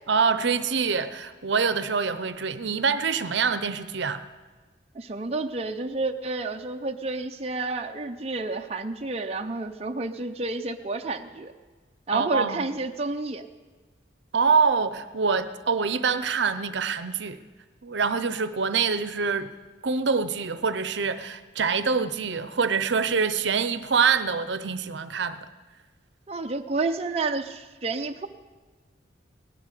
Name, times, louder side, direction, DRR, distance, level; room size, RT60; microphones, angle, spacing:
voice 1, 0.1-4.2 12.1-12.7 14.3-17.4 17.8-19.5 19.8-25.4, right 5 dB, 70° right, 12 dB, 0.7 m, -25 dB
voice 2, 4.9-11.5 12.1-13.5 26.3-28.3, right 3 dB, 35° right, 4 dB, 0.6 m, -30 dB
18.0 x 11.0 x 6.7 m, 1.3 s
head